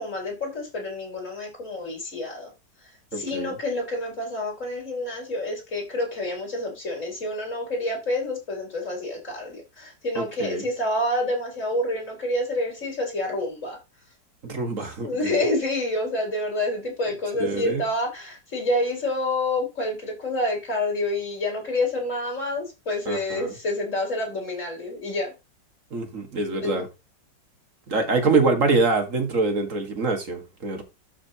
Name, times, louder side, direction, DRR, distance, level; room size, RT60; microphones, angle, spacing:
voice 1, 0.0-2.5 3.1-13.8 15.0-25.3 26.6-26.8, left 1 dB, 40° left, 4.8 m, -28 dB
voice 2, 3.1-3.6 10.2-10.6 14.4-15.3 17.4-17.8 23.1-23.5 25.9-26.9 27.9-30.8, right 3 dB, 45° right, 1.9 m, -25 dB
12.5 x 6.1 x 2.8 m
omnidirectional pair, 2.0 m